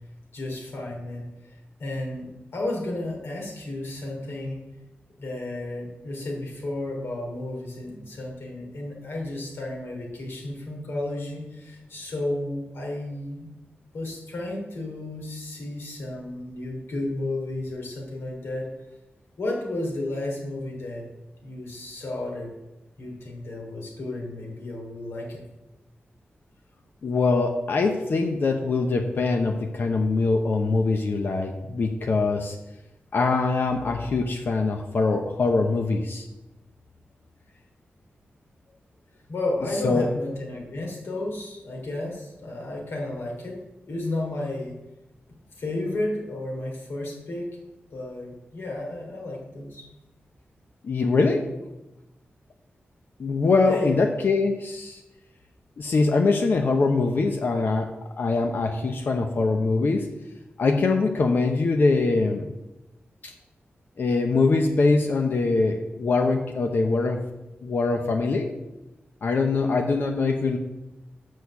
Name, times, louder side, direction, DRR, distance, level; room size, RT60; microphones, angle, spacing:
voice 1, 0.3-4.6 5.2-13.5 13.9-18.7 19.4-21.1 21.4-22.5 23.0-25.4 39.3-43.6 43.9-44.7 45.6-47.5 47.9-49.9 53.6-53.9, left 1 dB, 80° left, -2 dB, 2.9 m, -32 dB
voice 2, 27.0-32.6 33.1-36.3 39.8-40.1 50.8-51.4 53.2-55.0 55.8-60.1 60.6-62.5 64.0-67.2 67.6-68.5 69.2-70.6, left 3 dB, 55° left, 4 dB, 0.7 m, -23 dB
6.4 x 6.4 x 7.0 m, 0.97 s
wide cardioid pair, 155°, 4 cm